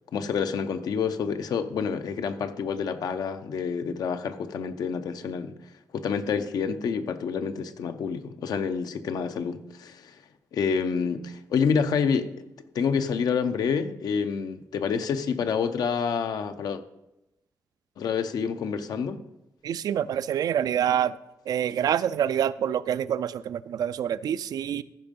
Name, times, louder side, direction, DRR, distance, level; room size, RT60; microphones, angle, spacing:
voice 1, 0.1-5.5 5.9-10.2 10.5-12.5 12.7-16.8 18.0-19.2, left 6 dB, 85° left, 9 dB, 0.7 m, -28 dB
voice 2, 19.6-21.2 21.5-24.8, right 9 dB, 85° right, 15 dB, 0.4 m, -26 dB
14.5 x 5.4 x 5.3 m, 0.92 s
wide cardioid pair, 120°, 7 cm